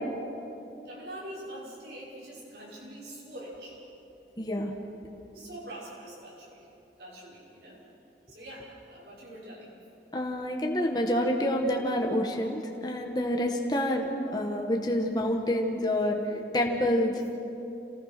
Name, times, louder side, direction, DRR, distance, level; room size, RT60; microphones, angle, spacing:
voice 1, 0.8-3.8 5.3-6.7 7.0-7.8 8.3-9.7, right 1 dB, 80° right, -6 dB, 5.9 m, -44 dB
voice 2, 4.4-4.7 10.1-17.2, left 1 dB, 25° left, 1 dB, 1.7 m, -28 dB
28.0 x 19.0 x 6.2 m, 2.9 s
head